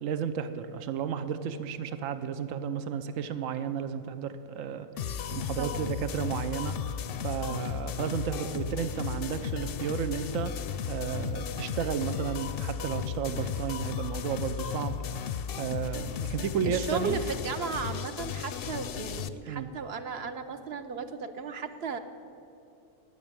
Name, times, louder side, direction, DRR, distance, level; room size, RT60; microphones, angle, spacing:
voice 1, 0.0-4.9 5.3-7.0 7.2-10.6 10.9-14.9 15.2-17.2 19.5-19.7, right 8 dB, 75° right, 11 dB, 1.1 m, -33 dB
sound 1, 5.0-19.3, left 8 dB, 60° left, 0.7 m, -35 dB
voice 2, 5.6-5.9 7.5-7.7 16.6-22.0, right 5 dB, 55° right, 9 dB, 1.0 m, -35 dB
17.5 x 6.7 x 8.7 m, 2.7 s
omnidirectional pair, 1.4 m